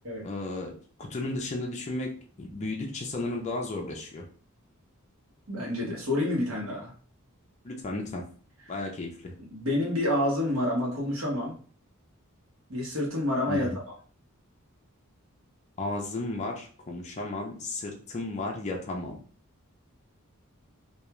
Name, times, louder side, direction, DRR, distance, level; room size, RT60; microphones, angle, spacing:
voice 1, 0.2-0.7 1.0-2.1 2.4-4.2 7.6-8.2 8.7-9.3 13.5-13.7 15.8-19.2, left 2 dB, 30° left, 0 dB, 0.4 m, -34 dB
voice 2, 5.5-6.9 8.6-8.8 9.5-11.5 12.7-13.7, left 1 dB, 70° right, -3 dB, 1.0 m, -28 dB
2.3 x 2.2 x 2.9 m, 0.43 s
head